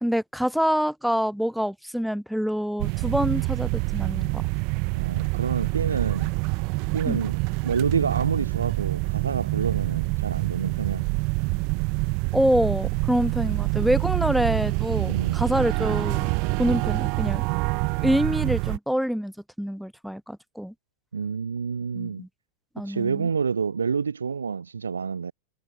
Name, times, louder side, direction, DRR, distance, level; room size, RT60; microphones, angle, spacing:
voice 1, 0.0-4.4 7.1-7.2 12.3-16.3 16.6-17.5 18.0-20.7 21.9-22.3 22.7-23.3, equal, ahead, 1.0 m, -26 dB
sound 1, 2.8-18.8, right 33 dB, 45° right, 0.3 m, -26 dB
voice 2, 4.9-6.4 6.9-11.0 15.0-15.4 21.1-22.2 22.8-25.3, right 6 dB, 75° right, 0.6 m, -28 dB
figure-of-eight pair, 90°, 0 cm